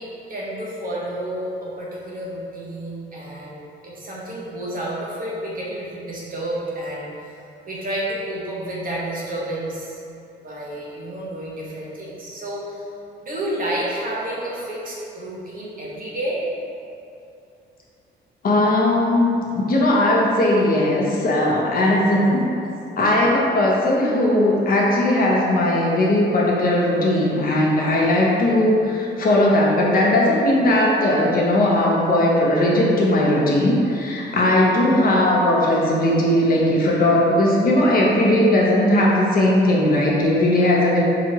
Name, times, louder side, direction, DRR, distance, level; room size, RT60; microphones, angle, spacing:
voice 1, 0.0-3.6 3.8-7.3 7.7-10.0 10.4-12.8 13.2-16.4, right 1 dB, 45° right, -6 dB, 1.1 m, -30 dB
voice 2, 18.4-19.3 19.5-22.4 23.0-41.0, left 1 dB, 45° left, -4 dB, 0.8 m, -18 dB
4.9 x 2.8 x 2.8 m, 2.6 s
cardioid pair, 90°, 20 cm